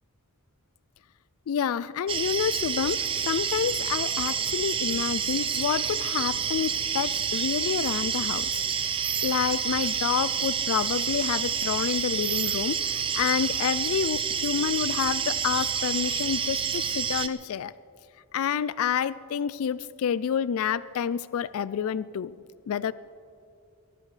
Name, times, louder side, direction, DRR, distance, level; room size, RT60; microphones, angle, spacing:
voice 1, 1.5-8.9 9.2-17.7 18.3-22.3 22.7-22.9, left 8 dB, 70° left, 18 dB, 0.3 m, -28 dB
sound 1, 2.1-17.3, right 7 dB, 25° right, 0.4 m, -28 dB
21.5 x 17.5 x 3.3 m, 2.4 s
head